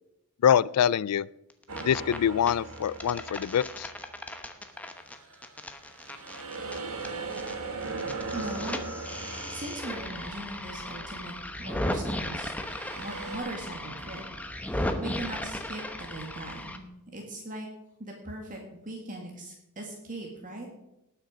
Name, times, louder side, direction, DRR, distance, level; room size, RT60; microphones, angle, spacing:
voice 1, 0.4-1.3 1.8-3.9, left 9 dB, 85° left, 22 dB, 0.3 m, -24 dB
sound 1, 1.5-2.2 2.5-7.5 7.8-16.8, left 1 dB, 5° left, 0.9 m, -36 dB
sound 2, 1.7-4.2 4.7-11.2 12.3-13.4, right 3 dB, 70° right, 1.8 m, -39 dB
voice 2, 8.3-8.8 9.5-11.3 11.6-12.5 13.0-14.2 14.6-16.8 17.1-17.7 18.0-20.7, right 1 dB, 35° right, 0 dB, 1.9 m, -39 dB
sound 3, 9.1-16.0, left 1 dB, 10° right, 3.1 m, -56 dB
19.0 x 6.6 x 5.1 m, 0.89 s
head